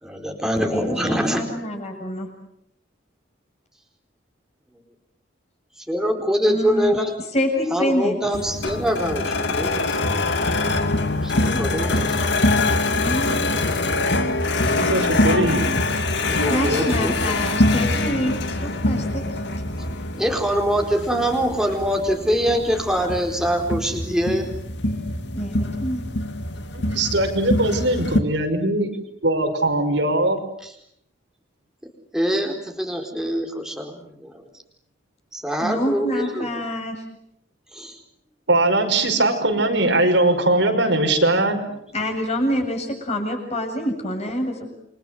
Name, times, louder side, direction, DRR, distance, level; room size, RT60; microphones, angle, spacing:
voice 1, 0.0-1.4 5.9-7.2 7.7-10.0 11.2-12.2 13.4-14.0 16.3-17.3 20.1-24.5 30.6-30.7 32.1-34.4 35.3-36.5 37.7-38.0, equal, 5° right, 3 dB, 4.3 m, -24 dB
voice 2, 0.7-2.3 6.5-7.0 7.3-8.3 11.3-11.8 12.9-13.4 16.4-19.4 25.3-26.1 35.6-37.1 41.9-44.7, equal, 35° left, 3 dB, 7.6 m, -26 dB
sound 1, 8.3-28.2, left 2 dB, 65° left, 2.5 m, -24 dB
voice 3, 14.8-15.7 16.6-16.9 26.7-28.9 29.2-30.4 38.5-41.6, right 2 dB, 70° right, 4 dB, 5.7 m, -20 dB
29.0 x 25.0 x 7.9 m, 0.74 s
head